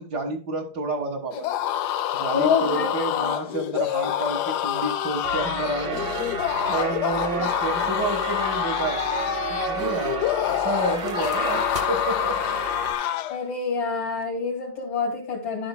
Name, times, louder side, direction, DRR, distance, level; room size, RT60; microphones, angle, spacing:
voice 1, 0.0-1.6 2.1-6.1 6.4-9.0 9.5-12.4, right 2 dB, 60° right, -1 dB, 2.2 m, -30 dB
sound 1, 1.3-13.4, left 11 dB, 70° left, 1.0 m, -27 dB
voice 2, 2.3-3.4 13.3-15.7, left 5 dB, 90° left, -2 dB, 3.1 m, -27 dB
sound 2, 5.2-12.9, right 4 dB, 40° right, 0.9 m, -32 dB
12.0 x 7.8 x 2.2 m, 0.37 s
omnidirectional pair, 2.1 m